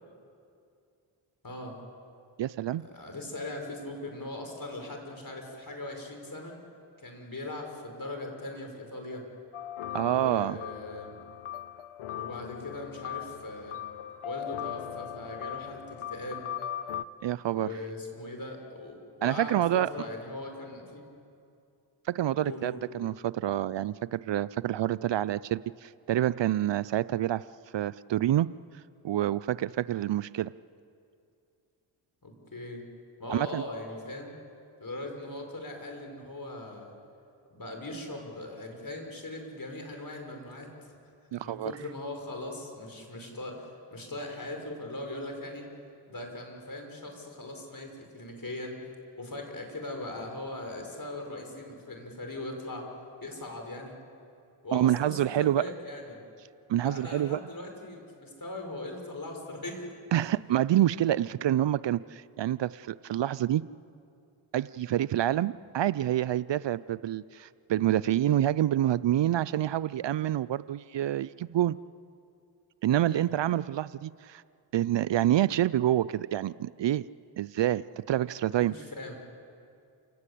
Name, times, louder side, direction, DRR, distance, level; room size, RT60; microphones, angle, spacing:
voice 1, 1.4-1.8 2.8-6.6 7.0-9.3 10.1-11.2 12.1-13.8 14.2-16.5 17.5-21.0 22.4-22.8 32.2-32.8 33.2-34.3 34.8-36.9 37.5-40.7 41.4-45.7 46.1-48.8 49.2-52.9 53.2-54.0 54.6-56.2 56.8-59.8 73.1-73.4 78.5-79.2, left 2 dB, 40° left, 3 dB, 6.2 m, -40 dB
voice 2, 2.4-2.8 9.9-10.6 17.2-17.7 19.2-19.9 22.1-27.4 27.7-28.5 29.0-30.5 33.3-33.6 41.3-41.7 54.7-55.6 56.7-57.4 60.1-63.6 64.5-71.8 72.8-74.4 74.7-77.0 77.4-78.7, right 12 dB, 60° right, 17 dB, 0.6 m, -27 dB
sound 1, 9.5-17.0, left 11 dB, 80° left, 0.8 m, -39 dB
29.0 x 18.0 x 8.5 m, 2.5 s
supercardioid pair, 40°, 49 cm